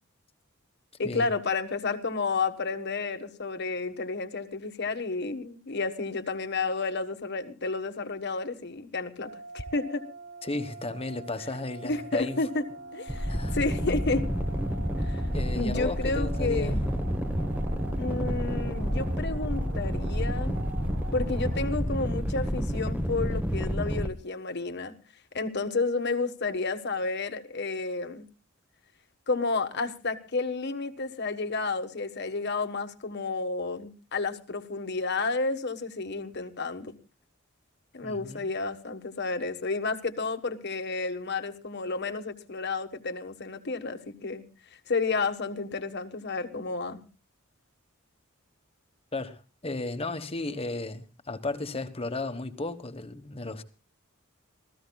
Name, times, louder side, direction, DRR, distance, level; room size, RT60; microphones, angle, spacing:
voice 1, 1.0-10.0 11.8-12.6 12.9-14.3 15.0-15.2 15.5-16.8 18.0-20.5 21.1-24.9 25.3-28.3 29.3-36.9 37.9-44.4 44.9-47.0, left 3 dB, 55° left, 1.4 m, -31 dB
sound 1, 9.2-21.7, right 2 dB, 80° right, 2.9 m, -43 dB
voice 2, 10.4-12.4 13.3-13.6 15.3-16.8 38.0-38.4 49.1-53.6, left 2 dB, 30° left, 1.3 m, -34 dB
sound 2, 13.1-24.1, equal, 10° right, 1.0 m, -29 dB
27.0 x 15.0 x 2.3 m
head